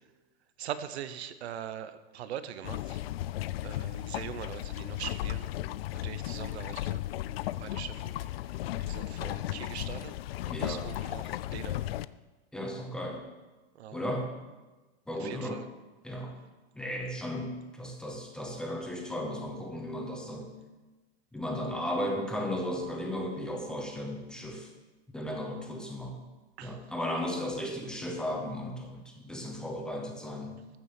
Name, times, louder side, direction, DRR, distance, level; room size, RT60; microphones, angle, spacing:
voice 1, 0.6-3.0 3.6-5.5 6.0-7.0 7.6-8.1 8.8-10.1 10.4-11.9 13.8-14.0 15.2-15.5 26.6-26.8, right 10 dB, 85° right, 12 dB, 1.2 m, -41 dB
sound 1, 2.6-12.1, left 14 dB, 65° left, 0.5 m, -35 dB
voice 2, 10.5-10.9 12.5-13.3 13.9-14.3 15.1-15.6 16.0-16.4 16.8-20.5 21.3-24.7 25.1-26.2 26.6-30.6, left 1 dB, ahead, 1 dB, 0.8 m, -35 dB
14.5 x 7.2 x 6.8 m, 1.2 s
supercardioid pair, 180°, 32 cm